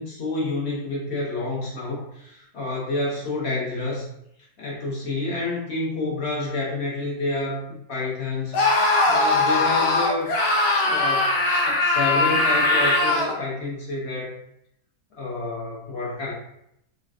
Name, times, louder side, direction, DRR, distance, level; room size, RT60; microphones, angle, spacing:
voice 1, 0.0-4.0 4.6-10.3 10.8-14.4 15.2-16.3, left 2 dB, 50° left, -5 dB, 0.9 m, -29 dB
Screaming, 8.5-13.4, left 2 dB, 80° left, 0.5 m, -20 dB
3.4 x 2.2 x 2.3 m, 0.76 s
omnidirectional pair, 1.7 m